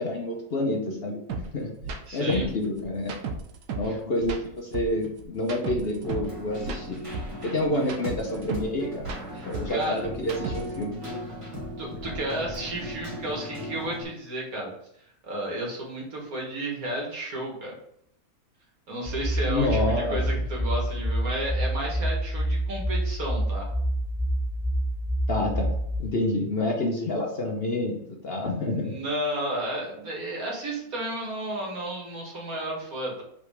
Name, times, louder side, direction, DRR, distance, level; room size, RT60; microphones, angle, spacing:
voice 1, 0.0-1.8 2.1-3.1 3.7-7.0 7.4-9.0 9.4-11.2 19.5-20.2 25.3-28.9, left 1 dB, 45° left, 0 dB, 0.9 m, -28 dB
sound 1, 1.3-1.4 1.8-2.0 2.3-3.9 4.2-6.3 6.6-8.7 9.0-10.8, right 4 dB, 85° right, 1.3 m, -34 dB
voice 2, 2.1-2.5 3.8-4.0 9.3-10.0 11.8-14.7 15.2-17.8 18.9-23.7 28.8-33.2, right 1 dB, 65° right, -1 dB, 2.1 m, -32 dB
Keyboard (musical), 6.0-14.0, equal, 20° right, 1.5 m, -38 dB
sound 2, 19.1-26.0, right 1 dB, 25° left, 0.7 m, -27 dB
5.2 x 4.2 x 4.9 m, 0.73 s
omnidirectional pair, 1.6 m